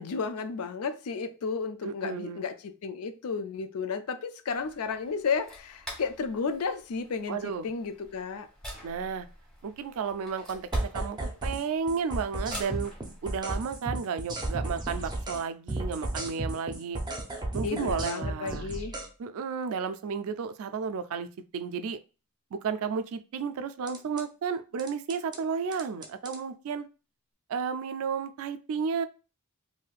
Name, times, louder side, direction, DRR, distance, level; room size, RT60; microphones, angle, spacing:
voice 1, 0.0-8.5 17.6-19.0, left 5 dB, 75° left, 10 dB, 0.4 m, -33 dB
voice 2, 1.8-2.4 7.3-7.7 8.8-9.3 9.6-10.7 10.9-12.9 13.2-17.0 17.5-18.7 19.2-21.3 21.5-22.0 22.5-26.9 27.5-29.1, right 6 dB, 65° right, 11 dB, 0.3 m, -32 dB
sound 1, 4.5-13.8, equal, 5° left, 1.0 m, -48 dB
sound 2, 10.7-11.6 11.9-15.4 15.7-19.1 23.9-24.2 24.8-25.4 25.7-26.4, right 2 dB, 20° right, 0.5 m, -33 dB
3.2 x 2.7 x 2.4 m, 0.33 s
head